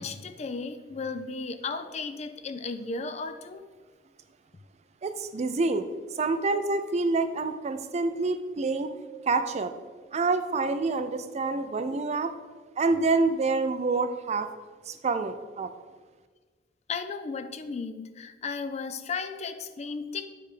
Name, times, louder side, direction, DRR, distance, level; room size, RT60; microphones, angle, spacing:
voice 1, 0.0-3.7 16.9-20.3, left 4 dB, 35° left, 10 dB, 0.4 m, -35 dB
voice 2, 5.0-5.9 6.1-8.9 9.3-9.7 10.1-12.3 12.8-14.5 14.9-15.7, right 3 dB, 40° right, 9 dB, 0.4 m, -27 dB
9.4 x 3.3 x 5.0 m, 1.4 s
head